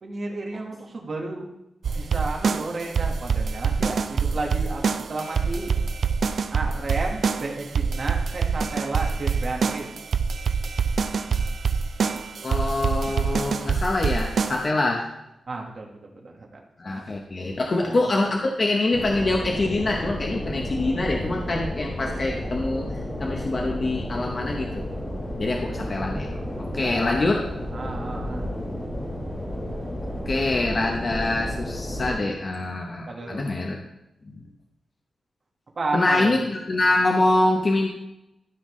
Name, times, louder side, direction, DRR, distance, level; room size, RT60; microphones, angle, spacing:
voice 1, 0.0-1.5 1.9-4.8 5.1-5.7 6.5-9.9 15.5-16.6 16.9-17.0 17.8-18.0 26.8-27.2 27.7-28.5 33.1-33.5 35.8-36.4, right 3 dB, 40° right, 0 dB, 1.5 m, -32 dB
sound 1, 1.8-14.7, right 5 dB, 60° right, 0.4 m, -25 dB
voice 2, 12.4-15.1 16.8-22.9 23.2-24.8 25.4-26.3 26.6-27.4 30.3-33.8 34.3-34.4 35.9-37.9, left 2 dB, 35° left, 0 dB, 0.8 m, -25 dB
sound 2, 18.9-32.1, left 1 dB, 15° left, 2.3 m, -32 dB
13.5 x 5.7 x 3.2 m, 0.85 s
wide cardioid pair, 170°, 0 cm